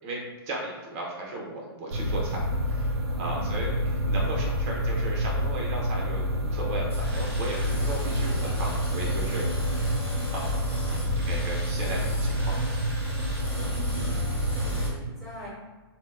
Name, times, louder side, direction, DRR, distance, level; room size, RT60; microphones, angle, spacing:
voice 1, 0.0-9.9 10.3-10.8 11.2-12.6, right 2 dB, 35° right, -2 dB, 0.8 m, -36 dB
sound 1, 1.9-14.9, equal, 90° right, 0.5 m, -28 dB
voice 2, 3.3-3.7 10.8-11.4 13.6-15.5, equal, ahead, -14 dB, 1.4 m, -44 dB
sound 2, 6.9-14.9, equal, 15° left, 1.0 m, -40 dB
2.7 x 2.1 x 3.5 m, 1.2 s
hypercardioid pair, 150°, 13 cm